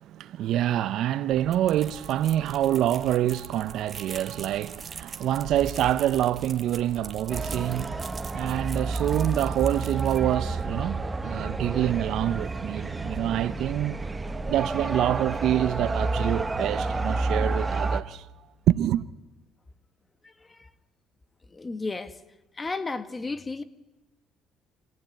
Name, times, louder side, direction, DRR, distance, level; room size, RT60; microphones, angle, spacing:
voice 1, 0.0-14.0 14.5-18.3 18.7-19.0, right 12 dB, 70° right, 0.7 m, -26 dB
sound 1, 1.3-10.7, right 5 dB, 35° right, 1.5 m, -42 dB
sound 2, 7.3-18.0, right 3 dB, 20° right, 1.1 m, -30 dB
voice 2, 20.2-20.7 21.5-22.2 22.5-23.6, left 3 dB, 25° left, 1.5 m, -34 dB
25.0 x 15.0 x 9.1 m
supercardioid pair, 80°, 0 cm